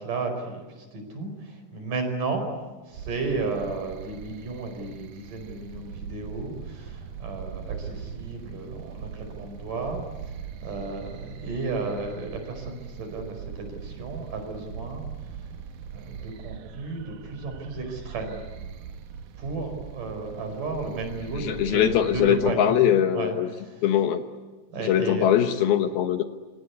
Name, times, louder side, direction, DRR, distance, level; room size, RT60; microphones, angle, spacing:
voice 1, 0.0-2.5 2.8-15.5 15.9-18.4 19.4-22.8 23.1-23.8 24.7-25.3, right 3 dB, 50° right, 5 dB, 6.3 m, -33 dB
sound 1, 2.9-22.5, right 7 dB, 65° right, 2.1 m, -40 dB
voice 2, 21.4-23.5 23.8-24.2 24.8-26.2, left 10 dB, 70° left, 7 dB, 2.9 m, -22 dB
28.0 x 25.5 x 8.3 m, 1.2 s
omnidirectional pair, 4.8 m